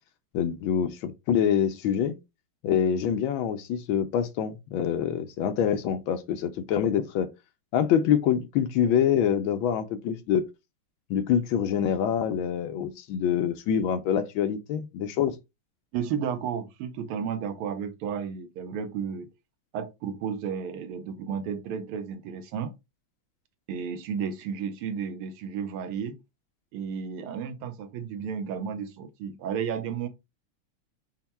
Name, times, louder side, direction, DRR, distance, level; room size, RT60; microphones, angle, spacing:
voice 1, 0.3-2.2 2.6-7.3 7.7-10.5 11.1-15.3, left 8 dB, 75° left, 1.3 m, -25 dB
voice 2, 15.9-19.3 19.7-22.7 23.7-26.2 26.7-30.1, right 7 dB, 80° right, 1.7 m, -33 dB
5.7 x 2.2 x 4.2 m
omnidirectional pair, 2.4 m